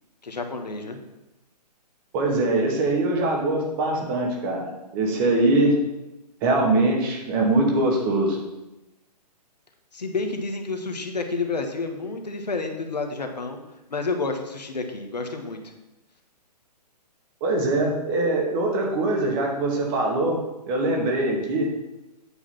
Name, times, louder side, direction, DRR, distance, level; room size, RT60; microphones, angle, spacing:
voice 1, 0.2-1.0 9.9-13.6 13.9-15.6, left 3 dB, 75° left, 5 dB, 1.4 m, -29 dB
voice 2, 2.1-4.7 4.9-5.8 6.4-8.4 17.4-20.4 20.7-21.7, right 2 dB, 30° right, 0 dB, 2.1 m, -22 dB
8.7 x 4.9 x 5.8 m, 0.97 s
figure-of-eight pair, 130°, 21 cm